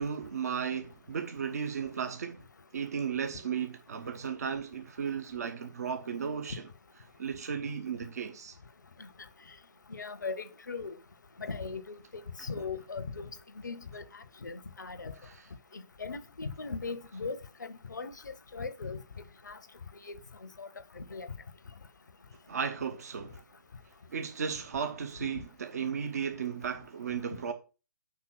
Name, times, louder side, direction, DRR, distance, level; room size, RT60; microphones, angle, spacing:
voice 1, 0.0-2.4 2.7-6.7 7.2-8.5 15.2-15.4 22.5-23.4 24.1-27.5, right 7 dB, 55° right, 0.9 m, -35 dB
voice 2, 9.9-11.0 11.4-12.0 12.4-13.3 13.6-15.1 15.7-19.0 19.5-19.6 20.1-20.7 21.0-21.3, left 4 dB, 70° left, 0.7 m, -39 dB
5.6 x 4.9 x 6.1 m
figure-of-eight pair, 130°, 10 cm